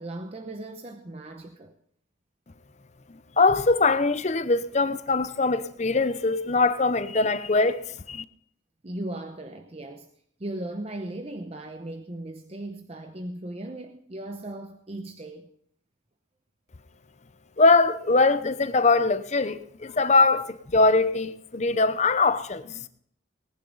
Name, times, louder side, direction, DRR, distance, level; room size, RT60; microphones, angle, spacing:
voice 1, 0.0-1.7 8.8-10.1 10.4-15.5, right 1 dB, 30° right, 0.8 m, -37 dB
voice 2, 3.4-7.8 8.1-8.2 17.6-22.8, left 3 dB, 35° left, 0.7 m, -22 dB
18.5 x 10.5 x 4.0 m
head